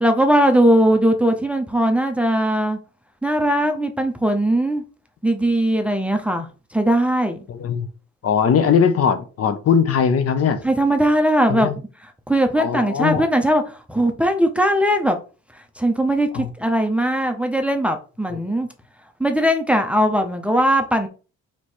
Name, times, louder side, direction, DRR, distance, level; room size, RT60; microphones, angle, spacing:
voice 1, 0.0-2.8 3.2-4.8 5.2-6.5 6.7-7.4 10.6-11.7 12.3-15.2 15.8-18.7 19.2-21.1, right 1 dB, 5° right, 0.6 m, -19 dB
voice 2, 7.5-7.9 8.2-10.6 11.5-11.7 12.6-13.2 16.3-16.5 18.3-18.4, left 7 dB, 50° left, 0.7 m, -19 dB
3.1 x 2.9 x 4.4 m
cardioid pair, 90°, 30 cm